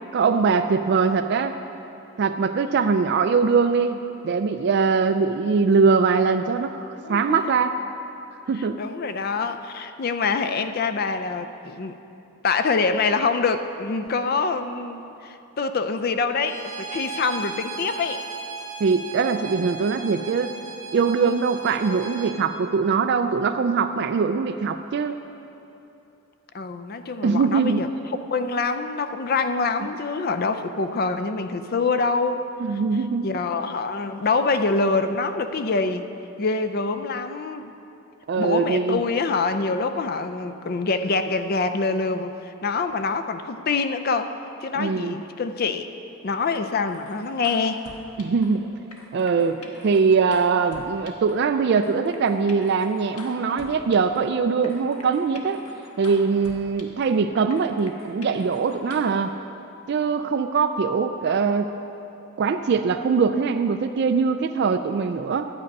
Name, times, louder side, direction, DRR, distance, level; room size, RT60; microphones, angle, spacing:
voice 1, 0.1-1.6 2.2-7.8 8.5-8.8 18.8-20.6 20.9-25.2 27.2-27.9 32.6-33.3 38.3-39.0 44.8-45.2 48.2-48.7 49.1-55.6 56.0-59.3 59.9-61.7 62.4-65.5, right 5 dB, 50° right, 8 dB, 0.3 m, -22 dB
voice 2, 7.0-7.5 8.8-12.0 12.4-18.2 26.5-27.9 28.3-32.4 33.2-36.1 36.4-37.7 38.4-44.4 44.6-45.9 46.2-47.8, left 4 dB, 45° left, 9 dB, 0.4 m, -25 dB
Bowed string instrument, 16.4-22.4, right 5 dB, 85° right, 1.1 m, -36 dB
sound 1, 46.8-48.6 48.9-51.5 51.8-54.3 54.6-57.2 57.5-59.2, left 2 dB, 90° left, 1.2 m, -45 dB
12.0 x 8.5 x 5.3 m, 2.9 s
head